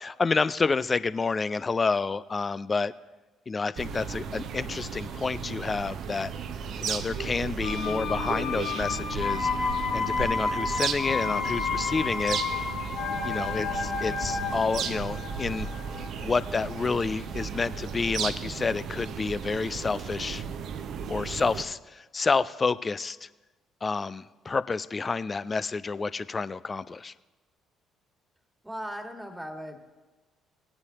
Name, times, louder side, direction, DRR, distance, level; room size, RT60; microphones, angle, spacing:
voice 1, 0.0-2.9 3.5-6.3 6.8-12.4 13.2-15.7 16.2-20.4 21.1-23.3 23.8-27.1, left 4 dB, 30° left, 16 dB, 0.4 m, -29 dB
sound 1, 3.8-21.6, right 6 dB, 55° right, 0.6 m, -35 dB
sound 2, 7.6-17.3 17.6-17.7, left 5 dB, 60° left, 1.1 m, -31 dB
voice 2, 28.6-29.8, equal, 5° right, 4 dB, 1.8 m, -37 dB
19.0 x 9.6 x 2.9 m, 1.2 s
figure-of-eight pair, 45°, 0 cm